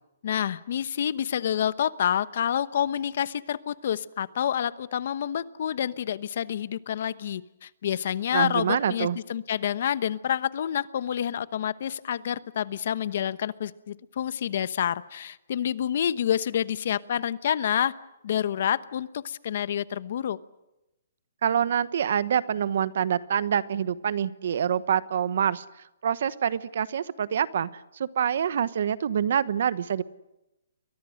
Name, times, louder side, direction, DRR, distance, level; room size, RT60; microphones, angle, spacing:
voice 1, 0.2-17.9 18.2-20.4, left 9 dB, 55° left, 16 dB, 1.0 m, -28 dB
voice 2, 8.3-9.2 21.4-25.6 26.0-27.7 27.9-30.0, right 8 dB, 55° right, 16 dB, 1.1 m, -26 dB
29.5 x 22.5 x 6.5 m, 0.93 s
hypercardioid pair, 160°, 0 cm